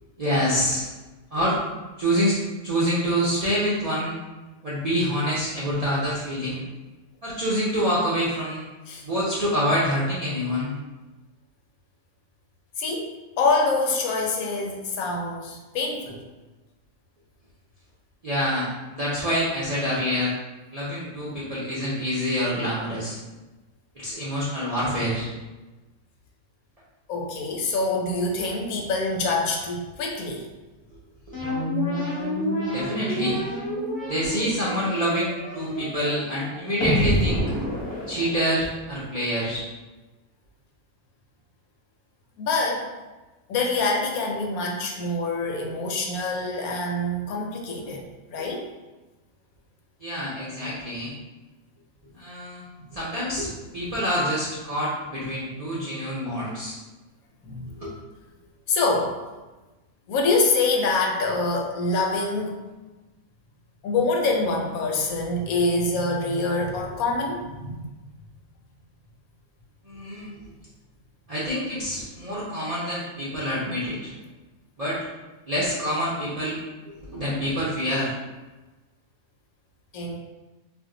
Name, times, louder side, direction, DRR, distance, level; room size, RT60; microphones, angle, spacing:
voice 1, 0.2-0.9 1.3-1.6 2.0-4.1 4.6-6.6 7.2-8.6 9.0-10.7 18.2-20.3 20.7-23.2 24.0-25.3 31.3-31.4 32.7-33.4 34.1-37.5 38.1-39.7 48.4-48.5 50.0-51.1 52.1-52.6 52.9-56.8 57.8-57.9 69.8-70.4 71.3-74.1 74.8-75.0 75.5-76.6 76.9-78.1, equal, 55° right, -9 dB, 0.4 m, -26 dB
voice 2, 12.8-16.2 27.1-30.5 42.4-42.9 43.5-48.7 57.4-57.7 58.7-59.2 60.1-62.5 63.8-67.9 79.9-80.2, left 3 dB, 75° left, 0 dB, 1.0 m, -25 dB
sound 1, 31.3-38.8, equal, 10° left, 0.7 m, -28 dB
2.5 x 2.2 x 3.6 m, 1.1 s
omnidirectional pair, 1.6 m